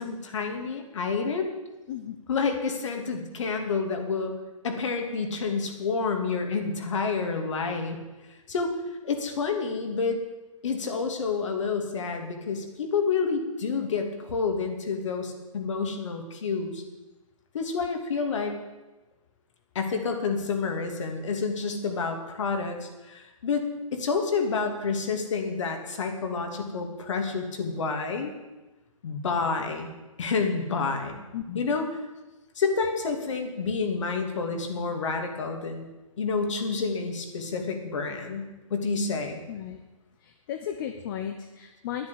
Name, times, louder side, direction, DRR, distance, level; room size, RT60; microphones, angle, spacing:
voice 1, 0.0-1.5 2.3-4.3 4.6-8.0 8.5-8.7 9.0-10.2 10.6-16.8 17.5-18.6 19.7-23.7 23.9-28.3 29.0-29.9 30.2-31.2 31.5-31.8 32.6-35.9 36.2-39.4, left 4 dB, 60° left, 4 dB, 2.6 m, -29 dB
voice 2, 31.3-31.8 39.5-39.8 40.2-42.1, left 9 dB, 35° left, 6 dB, 1.0 m, -35 dB
10.5 x 10.0 x 8.4 m, 1.1 s
figure-of-eight pair, 135°, 18 cm